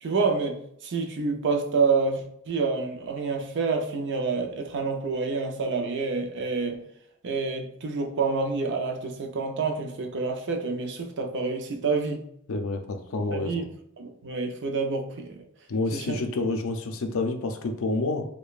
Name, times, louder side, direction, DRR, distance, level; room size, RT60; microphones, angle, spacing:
voice 1, 0.0-6.8 7.2-12.3 13.3-13.6 14.0-15.4 15.9-16.2, right 4 dB, 55° right, 0.5 m, -28 dB
voice 2, 12.5-13.6 15.7-18.3, left 2 dB, 65° left, 0.5 m, -28 dB
4.9 x 2.2 x 2.4 m
head